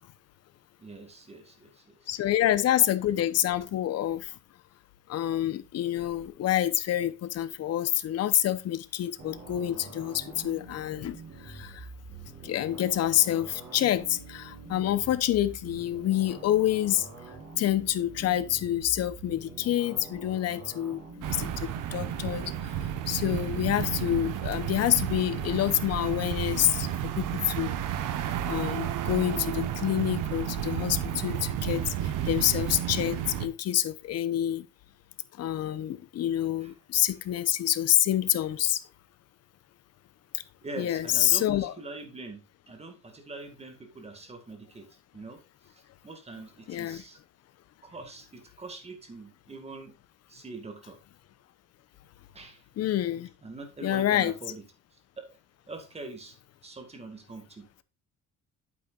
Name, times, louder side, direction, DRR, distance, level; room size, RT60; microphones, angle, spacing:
voice 1, 0.8-2.1 36.6-36.7 37.1-37.2 40.6-44.9 45.1-47.2 47.8-49.9 50.3-51.0 52.3-52.6 53.4-54.6 55.2-55.3 55.7-56.4 56.6-57.7, right 3 dB, 20° right, 1.8 m, -43 dB
voice 2, 2.1-4.4 5.1-11.9 12.4-17.1 17.6-22.5 23.1-26.9 27.2-27.8 28.4-34.7 35.4-38.8 40.3-40.4 40.8-41.7 46.7-47.0 52.8-53.3 53.8-54.3, left 12 dB, 50° left, 0.7 m, -27 dB
sound 1, 9.2-22.5, right 3 dB, 50° right, 3.8 m, -46 dB
sound 2, 21.2-33.5, right 10 dB, 75° right, 1.1 m, -32 dB
8.6 x 8.4 x 2.4 m
cardioid pair, 145°, 32 cm